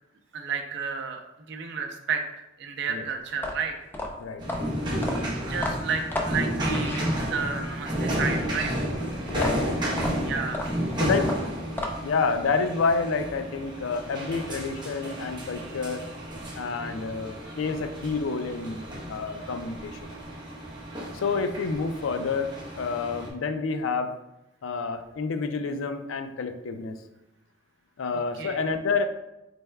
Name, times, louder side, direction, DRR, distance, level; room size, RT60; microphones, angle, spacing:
voice 1, 0.3-1.2 1.5-3.8 5.5-8.9 10.2-10.7 28.4-28.6, right 5 dB, 60° right, 4 dB, 0.5 m, -32 dB
sound 1, 3.3-7.6 9.3-12.2, left 1 dB, 10° left, 0.3 m, -33 dB
voice 2, 4.2-4.7 9.3-10.0 11.0-11.3 12.0-16.0 16.5-20.0 21.1-24.1 24.6-27.0 28.0-29.1, left 4 dB, 85° left, 8 dB, 0.4 m, -29 dB
sound 2, 4.4-23.3, equal, 25° right, 0.8 m, -32 dB
4.2 x 3.3 x 2.2 m, 0.91 s
head